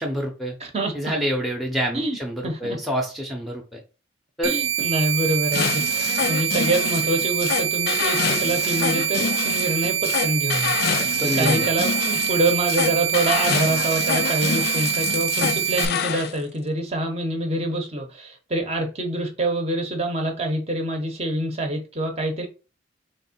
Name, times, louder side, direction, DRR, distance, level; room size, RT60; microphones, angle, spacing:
voice 1, 0.0-0.6 0.9-3.8 4.4-4.6 11.2-11.7, equal, ahead, 0.7 m, -27 dB
voice 2, 0.6-1.1 1.9-2.2 2.4-2.8 4.4-10.7 11.2-22.5, right 1 dB, 30° right, 0.8 m, -26 dB
sound 1, 4.4-15.9, right 11 dB, 75° right, 0.6 m, -25 dB
sound 2, 5.5-16.3, left 8 dB, 50° left, 0.3 m, -27 dB
3.5 x 3.2 x 4.3 m
head